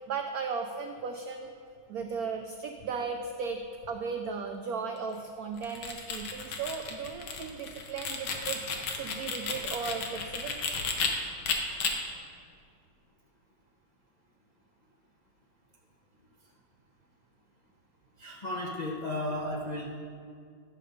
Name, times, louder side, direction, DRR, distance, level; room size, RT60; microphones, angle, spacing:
voice 1, 0.1-1.5 1.9-3.6 3.9-8.6 8.9-10.6, right 5 dB, 85° right, 5 dB, 0.8 m, -36 dB
sound 1, 5.6-11.1 11.4-11.9, left 5 dB, 75° left, 1.7 m, -33 dB
voice 2, 18.2-19.8, left 1 dB, 40° left, -4 dB, 0.5 m, -34 dB
11.0 x 6.6 x 5.1 m, 2.3 s
omnidirectional pair, 2.2 m